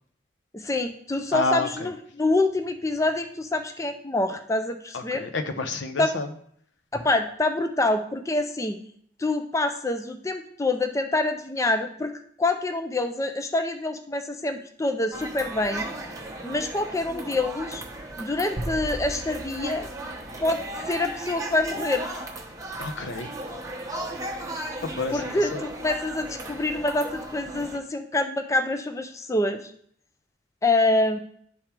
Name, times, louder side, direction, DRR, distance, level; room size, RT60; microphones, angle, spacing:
voice 1, 0.5-5.2 6.0-6.1 6.9-8.8 9.2-12.1 12.4-15.9 16.4-17.8 18.2-19.9 20.4-20.6 20.9-22.1 25.1-29.7 30.6-31.2, left 2 dB, 15° left, 7 dB, 0.4 m, -26 dB
voice 2, 1.3-1.9 4.9-6.3 22.8-23.3 24.8-25.6, left 3 dB, 80° left, 7 dB, 0.8 m, -29 dB
sound 1, 15.1-27.8, right 1 dB, 20° right, 1.0 m, -36 dB
sound 2, 18.6-21.1, right 1 dB, 50° right, 0.9 m, -37 dB
11.0 x 3.7 x 4.4 m, 0.64 s
head